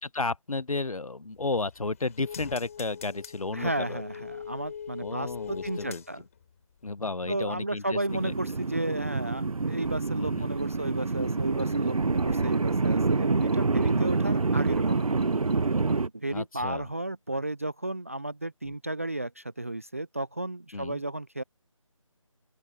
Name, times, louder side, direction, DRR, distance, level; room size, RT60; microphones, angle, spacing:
voice 1, 0.0-4.0 5.0-6.0 6.8-8.3 10.2-10.5 13.7-14.0 16.3-16.9 18.6-18.7 20.7-21.0, left 3 dB, 85° left, 1.2 m, -33 dB
sound 1, 1.3-6.5 6.8-6.9, left 7 dB, 25° left, 6.0 m, -42 dB
voice 2, 3.5-6.2 7.3-15.2 15.9-21.4, right 1 dB, 25° right, 0.4 m, -33 dB
sound 2, 8.1-16.1, right 3 dB, 90° right, 0.8 m, -27 dB
sound 3, 9.8-16.0, left 9 dB, 5° left, 6.5 m, -65 dB
open air
figure-of-eight pair, 165°, 17 cm